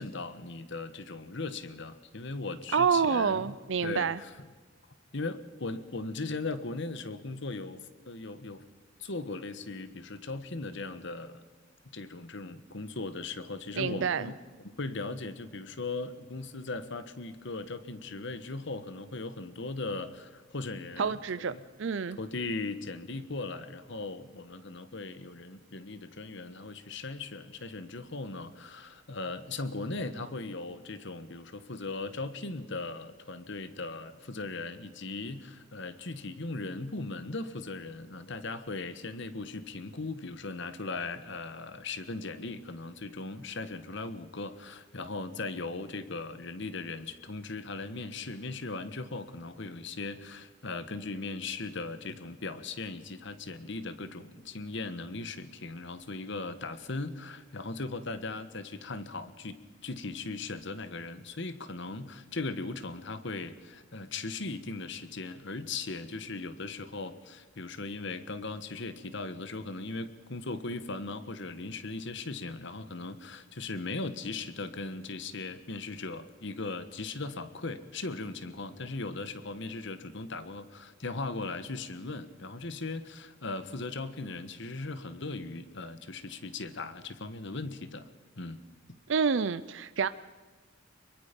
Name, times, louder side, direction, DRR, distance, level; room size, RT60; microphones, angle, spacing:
voice 1, 0.0-3.5 3.8-4.3 5.1-7.8 8.1-8.6 9.0-11.5 11.9-21.2 21.5-21.6 22.2-88.1 88.4-88.6, left 3 dB, 65° left, 12 dB, 1.4 m, -38 dB
voice 2, 2.7-4.2 13.7-14.3 21.0-21.5 21.8-22.2 89.1-90.1, right 6 dB, 70° right, 14 dB, 0.5 m, -28 dB
24.5 x 22.5 x 5.3 m, 1.4 s
head